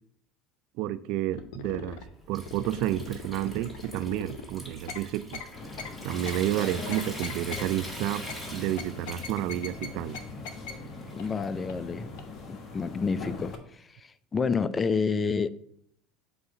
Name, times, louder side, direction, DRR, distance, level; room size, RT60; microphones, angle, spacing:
voice 1, 0.8-2.0 2.3-5.4 6.0-8.3 8.5-10.2, right 13 dB, 65° right, 0.3 m, -30 dB
sounds of braille'n speak, 1.3-2.0 2.5-4.5 4.9-5.0 5.3-5.5 5.8-5.9 6.3-6.4 6.9-7.6 8.3-8.4 8.8-9.9 10.1-10.2 10.4-10.7 11.2-11.3 11.7-11.8 12.2-12.3, left 6 dB, 70° left, 0.8 m, -39 dB
Water tap faucet / Sink (filling or washing) / Trickle dribble, 1.9-11.8, equal, 10° left, 1.8 m, -44 dB
sound 1, 5.5-13.6, left 3 dB, 45° left, 1.2 m, -41 dB
voice 2, 11.1-12.2 12.5-15.5, left 5 dB, 25° left, 0.4 m, -29 dB
7.9 x 2.7 x 4.9 m
hypercardioid pair, 85°, 0 cm